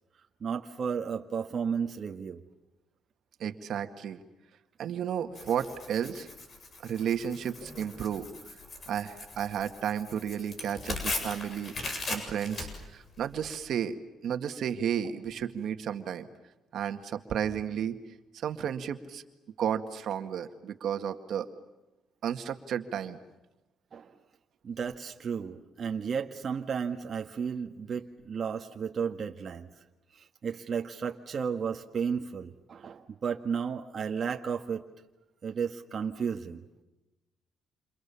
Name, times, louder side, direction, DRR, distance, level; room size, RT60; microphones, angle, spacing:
voice 1, 0.4-2.4 23.9-24.1 24.6-29.7 30.1-34.8 35.4-36.6, right 6 dB, 50° right, 3 dB, 1.6 m, -33 dB
voice 2, 3.4-4.2 4.8-6.3 6.8-8.3 8.9-11.7 12.1-14.0 14.2-16.3 16.7-18.0 18.3-19.2 19.6-21.5 22.2-23.2, right 8 dB, 70° right, 8 dB, 2.0 m, -32 dB
Tearing, 5.3-13.6, left 2 dB, 45° left, 7.8 m, -39 dB
28.5 x 28.5 x 7.1 m, 1.0 s
cardioid pair, 90°, 0 cm